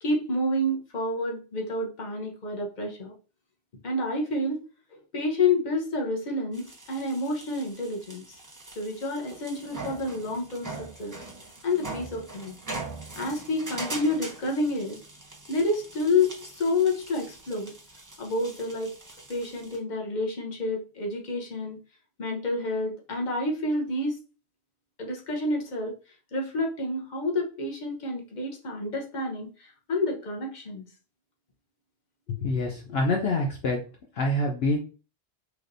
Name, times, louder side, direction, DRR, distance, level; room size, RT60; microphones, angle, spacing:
voice 1, 0.0-3.1 3.8-4.6 4.9-8.4 8.8-11.1 11.6-12.6 13.1-15.0 15.5-17.7 18.2-18.9 19.3-21.8 22.2-24.2 25.0-25.9 26.3-30.8, left 2 dB, 45° left, 0 dB, 1.1 m, -29 dB
sound 1, 6.5-19.8, right 3 dB, 20° right, 0.8 m, -42 dB
voice 2, 32.3-33.8 34.2-34.8, left 2 dB, 65° left, 1 dB, 0.9 m, -26 dB
4.8 x 3.1 x 2.6 m, 0.35 s
omnidirectional pair, 1.1 m